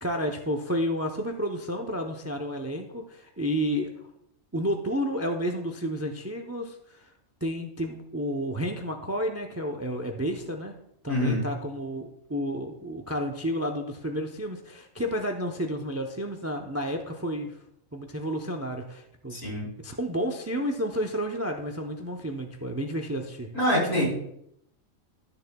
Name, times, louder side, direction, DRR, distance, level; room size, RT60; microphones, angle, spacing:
voice 1, 0.0-3.9 4.5-7.1 7.4-10.7 11.0-17.6 17.9-19.4 19.8-23.5, equal, 25° right, 4 dB, 0.3 m, -31 dB
voice 2, 11.1-11.5 19.3-19.7 23.5-24.0, left 1 dB, 90° left, -4 dB, 3.5 m, -25 dB
12.5 x 6.7 x 2.2 m, 0.75 s
omnidirectional pair, 1.4 m